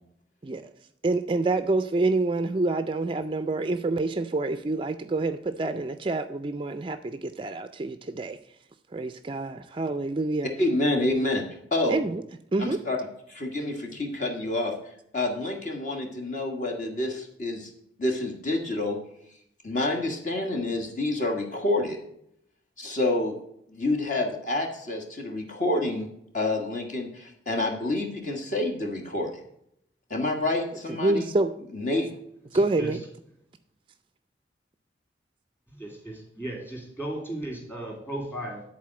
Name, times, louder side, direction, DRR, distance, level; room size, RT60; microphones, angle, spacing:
voice 1, 1.0-8.4 8.9-10.5 11.9-12.2 12.5-12.8 30.9-31.5 32.5-33.0, right 2 dB, 25° right, 10 dB, 0.3 m, -27 dB
voice 2, 10.6-11.4 11.7-12.0 12.6-13.0 13.3-14.7 15.1-17.7 18.0-19.0 19.6-22.0 22.8-23.4 23.7-26.1 26.3-29.3 30.1-31.3 31.7-32.1, left 2 dB, 45° left, 1 dB, 1.4 m, -28 dB
voice 3, 35.7-38.6, right 1 dB, 15° left, -1 dB, 2.7 m, -35 dB
10.5 x 4.3 x 7.5 m, 0.73 s
head